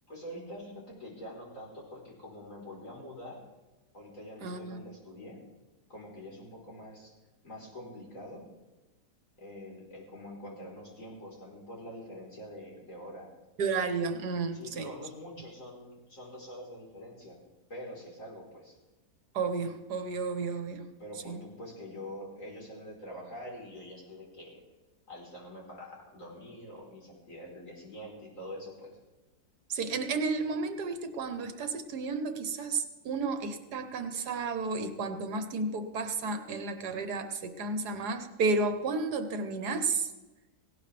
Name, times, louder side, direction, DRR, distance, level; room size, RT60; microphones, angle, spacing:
voice 1, 0.1-3.4 3.9-5.4 5.9-7.1 7.4-8.5 9.4-13.3 14.5-17.4 17.7-18.8 21.0-24.6 25.1-29.0, left 1 dB, 50° left, -3 dB, 4.6 m, -45 dB
voice 2, 4.4-4.8 13.6-14.9 19.3-20.9 21.2-21.4 29.7-40.1, right 4 dB, 70° right, 8 dB, 1.6 m, -32 dB
18.0 x 17.5 x 3.4 m, 1.1 s
omnidirectional pair, 1.8 m